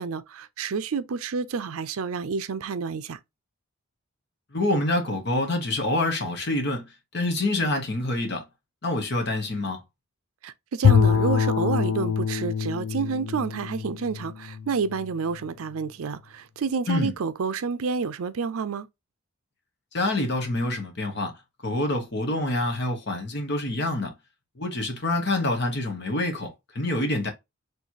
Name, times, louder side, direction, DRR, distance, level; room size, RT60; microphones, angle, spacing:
voice 1, 0.0-3.2 10.4-18.9, right 5 dB, 75° right, 0.5 m, -29 dB
voice 2, 4.5-6.9 7.1-8.4 8.8-9.8 16.9-17.1 19.9-21.4 21.6-24.1 24.6-27.3, left 2 dB, 50° left, 1.2 m, -26 dB
Bowed string instrument, 10.8-15.1, left 6 dB, 90° left, 0.5 m, -24 dB
4.5 x 3.2 x 2.8 m
head